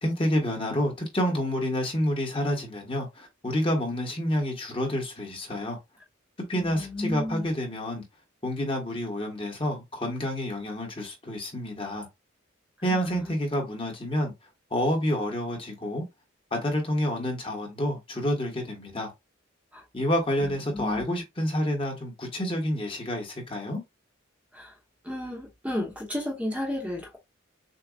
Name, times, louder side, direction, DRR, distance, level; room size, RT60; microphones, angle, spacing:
voice 1, 0.0-5.8 6.5-8.0 8.4-12.1 12.8-14.3 14.7-16.0 16.5-19.1 19.9-23.8, equal, 25° left, 1.3 m, -28 dB
voice 2, 6.5-7.5 12.9-13.3 19.7-19.8 20.4-21.1 24.5-24.7 25.0-27.2, left 1 dB, 5° right, 1.0 m, -33 dB
6.7 x 2.3 x 2.4 m
head